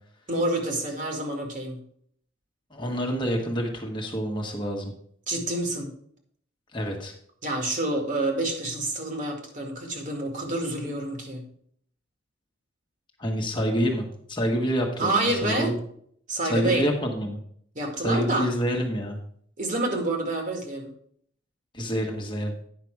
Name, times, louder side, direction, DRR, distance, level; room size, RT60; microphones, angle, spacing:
voice 1, 0.3-1.8 5.3-5.9 7.4-11.5 15.0-15.7 16.3-16.9 17.8-18.5 19.6-20.9, right 2 dB, 45° right, 2 dB, 2.0 m, -28 dB
voice 2, 2.7-4.9 6.7-7.1 13.2-15.8 16.4-17.4 18.0-19.2 21.7-22.5, equal, 25° left, 1 dB, 1.4 m, -27 dB
9.7 x 5.9 x 4.7 m, 0.63 s
head